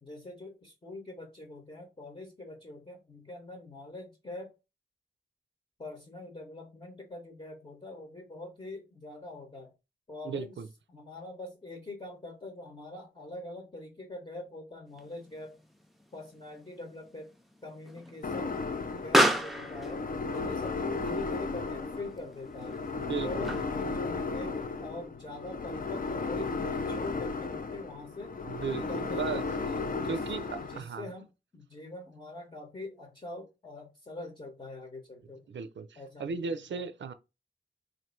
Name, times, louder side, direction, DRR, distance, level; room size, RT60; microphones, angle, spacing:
voice 1, 0.0-4.5 5.8-9.7 10.1-10.6 10.9-15.6 16.1-17.3 17.6-20.1 20.3-22.8 23.2-28.3 28.7-29.4 29.8-35.5 35.9-36.8, left 2 dB, 30° left, 0.9 m, -44 dB
voice 2, 10.2-10.7 22.9-23.6 28.5-29.4 30.1-31.1 35.5-37.1, right 5 dB, 85° right, 0.4 m, -36 dB
Explosion, 14.9-24.0, equal, ahead, 0.5 m, -34 dB
sound 1, 18.2-30.8, left 4 dB, 50° left, 0.5 m, -35 dB
3.0 x 2.5 x 4.4 m
wide cardioid pair, 90°, 19 cm